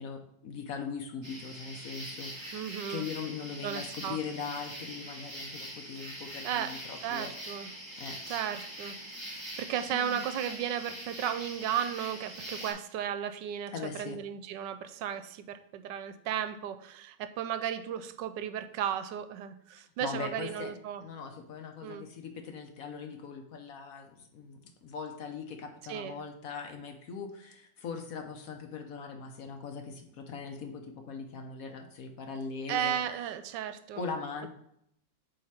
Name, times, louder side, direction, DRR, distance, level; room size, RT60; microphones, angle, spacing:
voice 1, 0.0-7.3 8.0-8.5 9.9-10.2 13.7-14.2 20.0-20.7 21.0-32.9 34.0-34.5, left 5 dB, 60° left, 4 dB, 1.1 m, -40 dB
sound 1, 1.2-12.7, right 1 dB, 25° right, 2.0 m, -43 dB
voice 2, 2.5-3.0 3.6-4.2 6.4-6.7 7.0-7.7 8.3-8.9 9.3-13.7 14.0-21.0 21.8-22.1 25.9-26.2 32.7-34.0, right 9 dB, 80° right, 10 dB, 1.2 m, -35 dB
7.8 x 3.3 x 4.3 m, 0.72 s
omnidirectional pair, 1.9 m